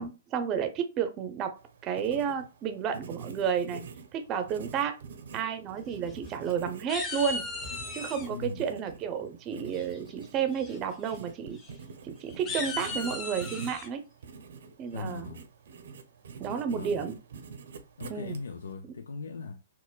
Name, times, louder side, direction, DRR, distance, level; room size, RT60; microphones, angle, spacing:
voice 1, 0.0-3.8 4.1-5.0 5.3-7.4 7.9-11.6 12.0-14.0 14.8-15.3 16.4-17.1 18.1-18.4, right 7 dB, 25° right, 0.5 m, -31 dB
Writing, 1.6-18.7, right 5 dB, 70° right, 0.6 m, -46 dB
sound 1, 5.9-6.5 6.9-8.3 9.7-10.1 10.5-10.8 11.0-11.2 11.6-11.7 12.3-13.9, left 3 dB, 15° left, 0.7 m, -37 dB
voice 2, 8.3-8.7 14.9-15.5 16.7-17.0 18.0-19.6, left 4 dB, 90° left, 0.3 m, -39 dB
4.3 x 2.1 x 2.2 m
hypercardioid pair, 145°, 0 cm